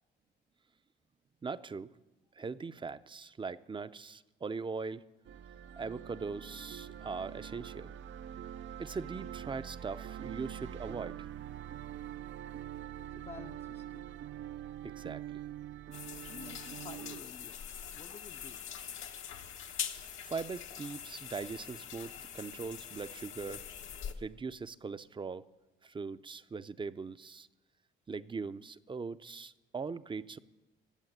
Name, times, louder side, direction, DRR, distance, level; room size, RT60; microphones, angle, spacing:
voice 1, 1.4-1.9 2.4-5.0 5.8-7.9 8.8-11.3 14.8-15.2 20.2-23.6 24.2-25.5 25.8-27.5 28.1-30.4, right 4 dB, 25° right, 14 dB, 0.5 m, -40 dB
sound 1, 5.2-17.2, right 10 dB, 70° right, 0.5 m, -44 dB
voice 2, 13.2-14.1 16.3-17.6 17.9-18.6, left 5 dB, 30° left, 5 dB, 0.5 m, -50 dB
sound 2, 15.9-24.1, left 8 dB, 85° left, 1.2 m, -43 dB
15.5 x 8.1 x 9.2 m, 1.1 s
cardioid pair, 90°, 20 cm